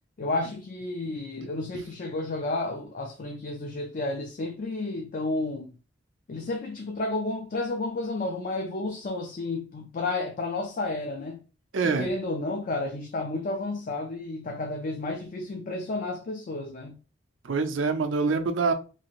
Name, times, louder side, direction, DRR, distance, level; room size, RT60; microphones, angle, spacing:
voice 1, 0.2-5.7 6.3-11.4 11.8-17.0, left 2 dB, 45° left, 0.4 m, -31 dB
voice 2, 11.7-12.1 17.4-18.7, right 4 dB, 90° right, 0.5 m, -25 dB
2.8 x 2.5 x 2.9 m
head